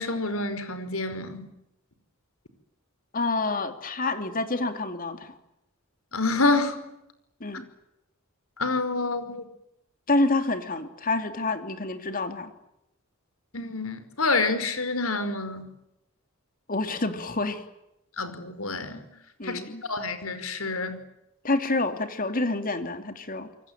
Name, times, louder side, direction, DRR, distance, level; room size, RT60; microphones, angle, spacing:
voice 1, 0.0-1.5 6.1-6.7 8.6-9.4 13.5-15.7 18.2-19.0 19.4-21.0, left 3 dB, 80° left, 11 dB, 5.1 m, -28 dB
voice 2, 3.1-5.4 7.4-7.7 10.1-12.5 16.7-17.6 19.4-19.8 21.4-23.5, left 2 dB, 40° left, 8 dB, 3.1 m, -28 dB
27.5 x 23.5 x 9.0 m, 0.86 s
head